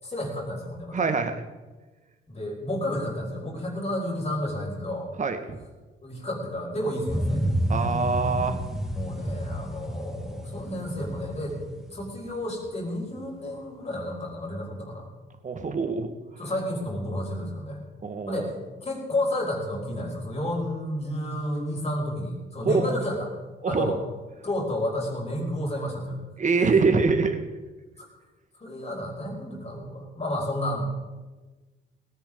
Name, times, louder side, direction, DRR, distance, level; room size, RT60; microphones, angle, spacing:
voice 1, 0.0-1.1 2.3-5.1 6.0-7.4 8.9-15.1 16.4-17.8 18.3-18.5 18.8-23.3 23.7-24.0 24.4-26.2 28.0-28.1 28.6-30.8, left 1 dB, 35° left, -1 dB, 5.5 m, -31 dB
voice 2, 0.9-1.4 5.2-5.6 7.7-8.6 15.4-16.1 18.0-18.5 22.6-22.8 23.6-24.0 26.4-27.4, right 4 dB, 40° right, 8 dB, 1.6 m, -24 dB
sound 1, 7.1-12.7 13.1-13.2, equal, ahead, 2.0 m, -30 dB
18.5 x 16.0 x 3.8 m, 1.2 s
cardioid pair, 90°, 20 cm